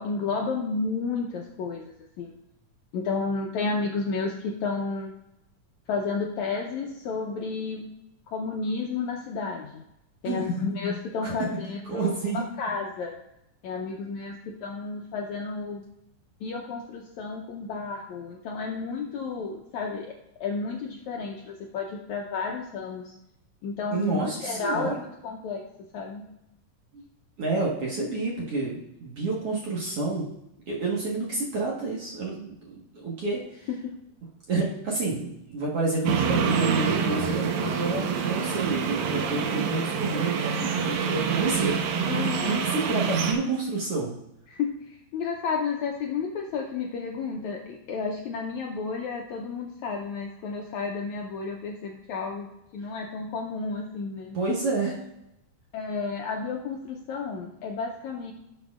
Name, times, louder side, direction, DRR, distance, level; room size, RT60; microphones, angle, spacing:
voice 1, 0.0-2.3 2.9-5.2 5.9-7.9 8.3-9.8 10.2-13.2 13.6-15.8 16.4-23.1 23.6-25.0 25.2-25.6 25.9-26.3 33.7-33.9 42.1-42.7 44.5-54.6 55.7-58.3, left 4 dB, 75° left, 0 dB, 1.7 m, -32 dB
voice 2, 10.2-10.6 11.2-11.3 11.9-12.4 23.9-25.0 26.9-27.0 27.4-30.3 30.7-33.7 34.5-44.1 54.3-54.9, right 3 dB, 50° right, -3 dB, 2.0 m, -29 dB
sound 1, 36.1-43.3, right 6 dB, 80° right, 2.7 m, -27 dB
17.5 x 6.5 x 2.4 m, 0.84 s
omnidirectional pair, 4.1 m